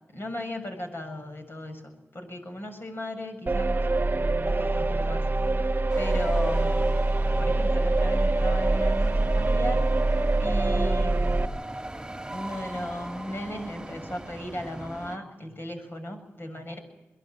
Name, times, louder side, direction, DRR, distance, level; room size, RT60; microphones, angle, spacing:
voice 1, 0.1-3.9 4.1-5.3 6.0-6.9 7.2-9.9 10.4-11.5 12.3-16.8, left 1 dB, 50° left, 5 dB, 7.3 m, -36 dB
sound 1, 3.5-11.5, right 2 dB, 40° right, 1.2 m, -24 dB
sound 2, 5.9-15.2, right 1 dB, 10° right, 2.7 m, -38 dB
23.0 x 22.0 x 7.9 m, 1.0 s
cardioid pair, 55°, 5 cm